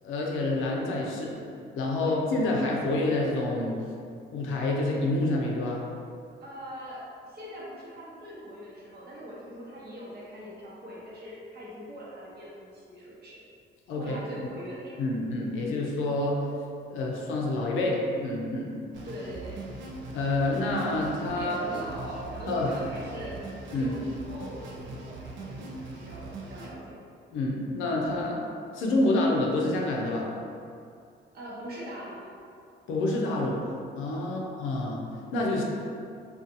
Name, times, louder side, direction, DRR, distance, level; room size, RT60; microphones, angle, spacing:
voice 1, 0.0-1.4 1.8-3.7 4.3-5.8 13.9-14.2 15.0-16.4 16.9-18.7 20.1-21.6 22.5-22.7 23.7-24.0 27.3-28.4 28.7-30.3 32.9-35.0 35.3-35.6, left 2 dB, 90° left, -2 dB, 0.5 m, -28 dB
voice 2, 6.4-13.4 13.9-15.5 19.0-19.6 21.3-23.5 23.8-25.7 25.9-27.0 31.3-32.3 34.2-34.4, equal, 55° right, -7 dB, 0.9 m, -41 dB
sound 1, 18.9-26.7, right 2 dB, 70° right, 0.4 m, -41 dB
2.5 x 2.3 x 2.7 m, 2.4 s
cardioid pair, 90°, 20 cm